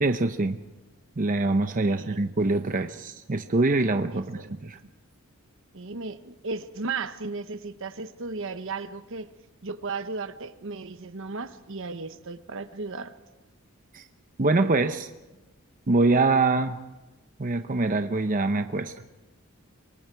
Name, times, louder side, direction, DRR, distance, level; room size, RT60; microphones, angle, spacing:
voice 1, 0.0-0.6 1.2-4.8 13.9-14.0 14.4-15.1 15.9-16.8 17.4-18.9, right 3 dB, 40° right, 8 dB, 0.7 m, -24 dB
voice 2, 1.8-2.2 4.1-4.7 5.7-9.3 9.6-13.1, right 4 dB, 65° right, 11 dB, 1.1 m, -35 dB
27.0 x 23.5 x 4.6 m, 1.1 s
head